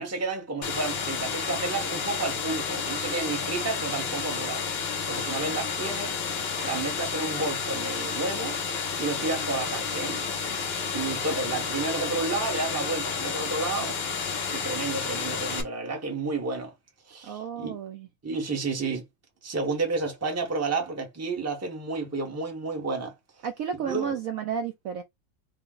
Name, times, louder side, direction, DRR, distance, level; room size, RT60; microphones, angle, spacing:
voice 1, 0.0-4.6 5.1-6.2 6.6-8.6 9.0-10.2 10.9-14.0 14.5-16.7 17.1-17.8 18.2-19.0 19.4-23.1 23.8-24.2, right 3 dB, 15° right, 0.5 m, -31 dB
sound 1, 0.6-15.6, left 5 dB, 60° left, 0.6 m, -31 dB
voice 2, 17.2-18.1 23.4-25.0, right 7 dB, 85° right, 0.7 m, -32 dB
4.1 x 2.0 x 3.7 m
omnidirectional pair, 2.1 m